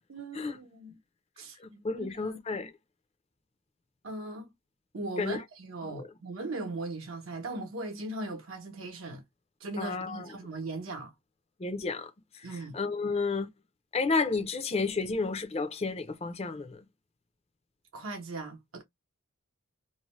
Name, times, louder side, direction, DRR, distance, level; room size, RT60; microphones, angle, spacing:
voice 1, 0.1-1.0 1.4-2.4 4.0-4.5 4.9-9.2 9.6-11.1 12.4-12.8 17.9-18.8, right 2 dB, 75° right, 0.8 m, -39 dB
voice 2, 1.6-2.7 5.2-5.4 5.8-6.0 9.8-10.3 11.6-13.5 13.9-16.8, left 4 dB, 30° left, 0.5 m, -32 dB
2.7 x 2.1 x 3.0 m
head